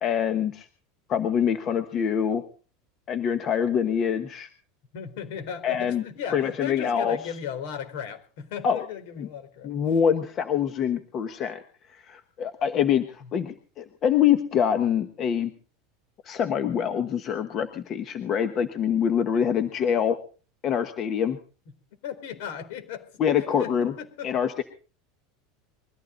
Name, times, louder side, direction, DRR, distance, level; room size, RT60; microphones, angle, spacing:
voice 1, 0.0-0.7 1.1-2.4 3.1-4.5 5.6-6.0 6.3-7.2 8.6-8.8 9.2-9.3 9.6-11.6 11.9-15.5 16.2-20.2 20.6-21.4 23.2-23.9 24.2-24.6, left 8 dB, 30° left, 8 dB, 1.2 m, -25 dB
voice 2, 4.9-9.7 13.2-13.3 22.0-24.3, left 8 dB, 60° left, 7 dB, 4.2 m, -36 dB
22.0 x 14.5 x 4.0 m, 0.39 s
supercardioid pair, 165°, 0 cm